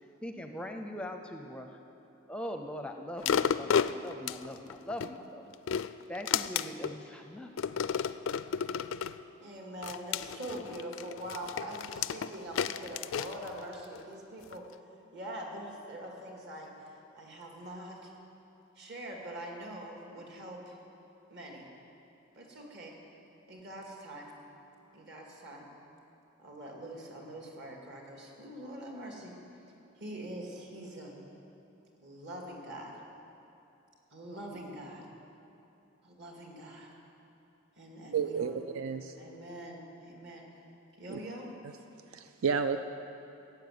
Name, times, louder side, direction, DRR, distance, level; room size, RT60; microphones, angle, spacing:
voice 1, 0.2-1.7 2.3-5.4 6.1-7.5, left 1 dB, 5° left, 5 dB, 0.5 m, -41 dB
sound 1, 3.2-5.1 5.5-7.0 7.6-9.2 9.8-14.0 14.5-14.6, left 7 dB, 65° left, 0.4 m, -32 dB
voice 2, 9.4-14.6 15.1-18.1 18.8-20.8 21.3-21.7 22.3-22.9 23.5-24.3 24.9-25.7 26.4-29.3 30.0-31.1 32.0-33.0 34.1-35.1 36.0-36.9 37.8-38.6 39.1-40.5 41.0-41.5, right 1 dB, 55° right, 0 dB, 2.2 m, -44 dB
voice 3, 38.1-39.1 41.1-41.2 42.1-42.8, right 6 dB, 85° right, 9 dB, 0.5 m, -31 dB
14.5 x 7.5 x 9.3 m, 2.9 s
head